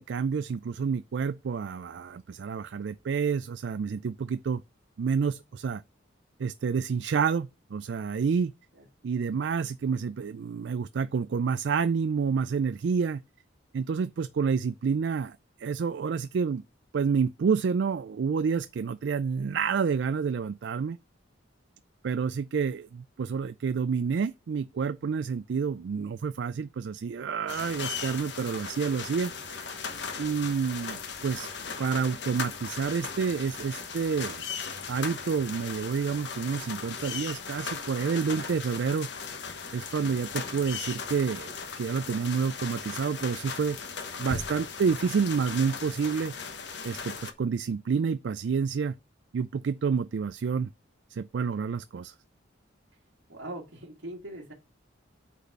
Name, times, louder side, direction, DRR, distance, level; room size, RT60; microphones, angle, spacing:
voice 1, 0.0-4.6 5.0-5.8 6.4-8.5 9.0-13.2 13.7-16.6 16.9-21.0 22.0-29.7 30.2-31.5 31.8-34.4 34.9-39.1 39.7-43.8 44.2-46.3 46.8-48.9 49.3-50.7 51.1-52.1, right 6 dB, 60° right, 0.3 m, -29 dB
sound 1, 27.5-47.3, left 5 dB, 60° left, 1.2 m, -38 dB
voice 2, 53.3-54.5, right 1 dB, 85° right, 1.9 m, -41 dB
8.2 x 4.2 x 5.9 m
head